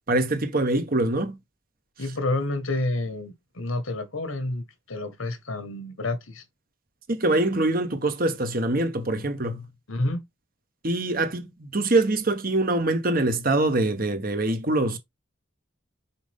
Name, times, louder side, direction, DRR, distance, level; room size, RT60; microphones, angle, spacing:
voice 1, 0.1-1.4 7.1-9.6 10.8-15.0, right 2 dB, 45° right, 1.2 m, -24 dB
voice 2, 2.0-6.4 9.9-10.2, left 2 dB, 80° left, 1.5 m, -29 dB
5.8 x 5.3 x 3.6 m
head